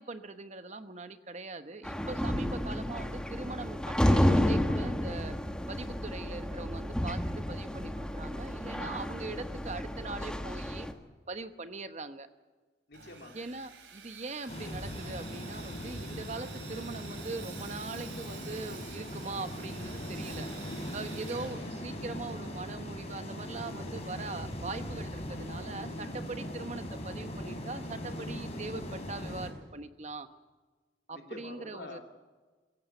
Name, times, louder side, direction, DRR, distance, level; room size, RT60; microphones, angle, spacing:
voice 1, 0.0-5.4 5.7-7.2 7.5-10.9 11.3-12.3 13.3-20.5 20.9-30.3 31.1-32.0, right 3 dB, 40° right, 10 dB, 1.1 m, -41 dB
sound 1, 1.8-10.9, left 1 dB, 5° left, 1.3 m, -31 dB
voice 2, 8.7-9.0 12.9-13.5 20.6-21.0 21.5-21.8 25.9-26.3 31.1-32.0, left 1 dB, 65° left, 3 dB, 3.2 m, -48 dB
Sawing, 12.9-22.4, right 8 dB, 80° right, 2.7 m, -50 dB
sound 2, 14.5-29.5, equal, 35° left, 4.3 m, -40 dB
22.5 x 16.0 x 8.2 m, 1.3 s
head